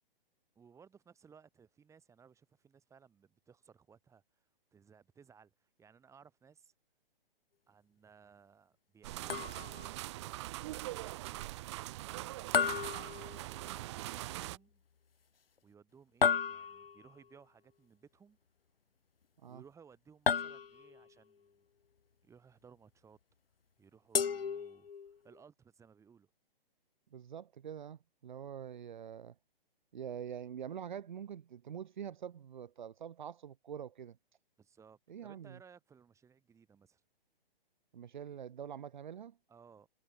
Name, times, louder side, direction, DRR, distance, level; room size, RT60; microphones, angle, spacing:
voice 1, 0.6-4.5 4.7-6.7 7.7-10.2 10.6-11.6 13.9-14.8 15.6-18.4 19.4-21.7 22.2-23.2 23.8-26.3 34.6-37.0 39.5-39.9, right 6 dB, 10° right, 7.1 m, -61 dB
sound 1, 9.0-14.6, right 17 dB, 30° right, 1.0 m, -42 dB
sound 2, 9.3-9.9 12.5-13.8 16.2-17.1 20.3-21.1 24.1-25.2, left 6 dB, 75° left, 0.8 m, -33 dB
voice 2, 27.1-29.3 29.9-34.2 35.1-35.6 37.9-39.4, right 8 dB, 50° right, 2.4 m, -45 dB
figure-of-eight pair, 125°, 30 cm